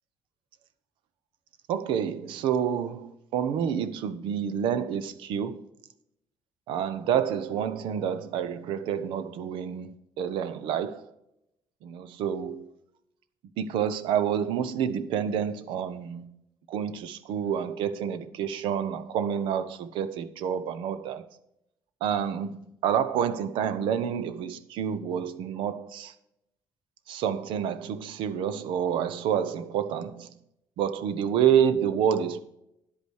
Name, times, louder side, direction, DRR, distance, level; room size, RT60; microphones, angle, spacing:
voice 1, 1.7-5.6 6.7-11.1 11.8-12.7 13.6-16.3 16.7-21.3 22.0-26.1 27.1-30.3 30.8-32.4, right 8 dB, 90° right, 0.9 m, -28 dB
10.0 x 8.4 x 4.7 m
cardioid pair, 165°, 8 cm